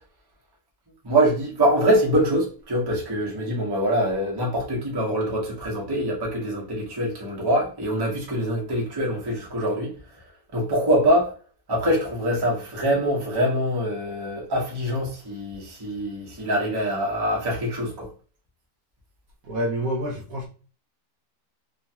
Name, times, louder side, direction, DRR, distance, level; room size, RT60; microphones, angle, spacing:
voice 1, 1.0-9.9 10.5-11.3 11.7-18.1, equal, 25° right, 0.5 m, -24 dB
voice 2, 19.4-20.5, equal, 65° right, 0.9 m, -27 dB
2.9 x 2.4 x 2.7 m
omnidirectional pair, 1.9 m